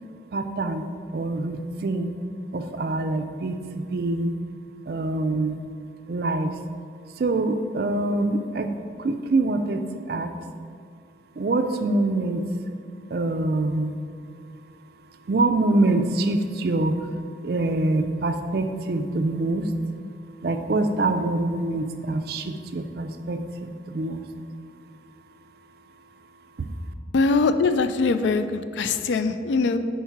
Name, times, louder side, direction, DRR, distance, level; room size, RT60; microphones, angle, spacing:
voice 1, 0.3-0.9 1.1-2.1 2.5-4.4 4.9-5.6 6.1-6.6 7.1-8.7 9.0-10.4 11.4-12.4 13.1-13.9 15.3-17.1 17.4-19.7 20.4-24.3 26.6-26.7, right 2 dB, 55° right, 8 dB, 0.4 m, -25 dB
voice 2, 27.1-29.8, left 4 dB, 80° left, 10 dB, 0.4 m, -22 dB
4.5 x 4.5 x 5.7 m, 2.2 s
head